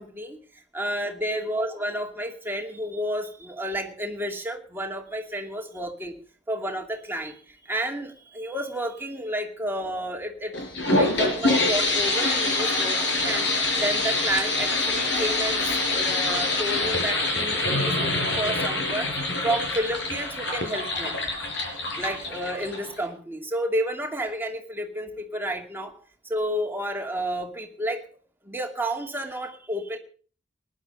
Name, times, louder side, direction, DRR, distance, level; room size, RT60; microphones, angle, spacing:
voice 1, 0.0-6.1 6.5-10.5 10.8-13.5 13.8-19.1 19.4-21.2 22.0-25.9 26.2-28.0 28.4-30.0, equal, 10° right, 2 dB, 2.5 m, -31 dB
sound 1, 10.5-23.1, left 2 dB, 70° left, 5.1 m, -25 dB
19.5 x 10.5 x 5.4 m, 0.43 s
head